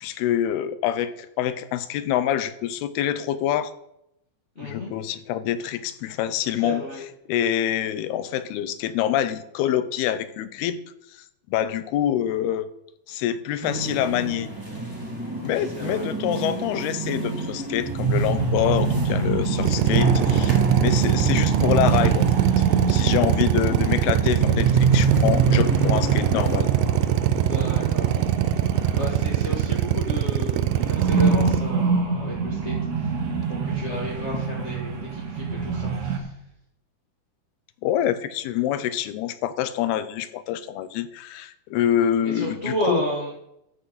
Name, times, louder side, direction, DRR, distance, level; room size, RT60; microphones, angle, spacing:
voice 1, 0.0-3.7 4.6-6.8 7.3-10.8 11.5-12.7 13.1-14.5 15.4-22.3 22.6-26.7 37.8-43.0, left 11 dB, 90° left, 14 dB, 2.8 m, -26 dB
voice 2, 4.5-4.9 6.5-7.0 15.6-16.1 27.3-28.1 28.9-36.4 42.2-43.3, equal, 30° left, -4 dB, 1.3 m, -32 dB
sound 1, 13.6-26.6, right 2 dB, 5° right, 2.2 m, -33 dB
sound 2, 17.7-30.2 30.4-36.2, right 5 dB, 50° right, 2.5 m, -25 dB
Drill, 19.6-31.6, right 13 dB, 85° right, 1.8 m, -22 dB
14.0 x 9.7 x 4.2 m, 0.81 s
omnidirectional pair, 4.4 m